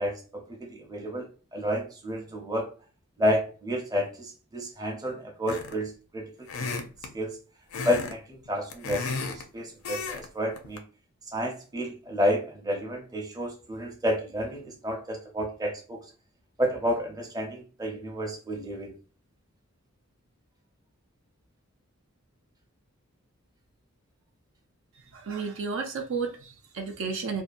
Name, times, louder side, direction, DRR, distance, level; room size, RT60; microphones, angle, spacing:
voice 1, 0.0-2.7 3.2-6.3 6.8-6.9 7.1-7.4 7.8-10.8 11.3-16.0 16.6-18.9, equal, 15° right, 0.6 m, -30 dB
sound 1, 5.5-5.9 6.5-7.1 7.7-8.1 8.5-9.4 9.8-10.3 10.6-10.8, left 4 dB, 70° left, 0.5 m, -33 dB
voice 2, 24.9-27.4, right 5 dB, 60° right, 0.5 m, -33 dB
2.6 x 2.2 x 2.4 m
head